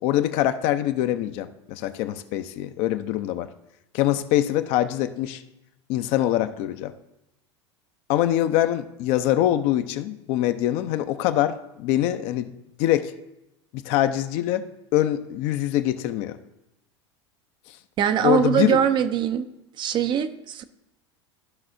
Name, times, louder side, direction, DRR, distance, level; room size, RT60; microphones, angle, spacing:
voice 1, 0.0-3.5 3.9-5.4 5.9-6.9 8.1-12.5 12.8-13.1 13.7-14.6 14.9-16.4 18.2-18.8, left 13 dB, 45° left, 11 dB, 0.5 m, -24 dB
voice 2, 18.0-19.5 19.8-20.6, right 9 dB, 35° right, 11 dB, 0.5 m, -22 dB
14.0 x 5.6 x 2.6 m, 0.88 s
figure-of-eight pair, 80°, 15 cm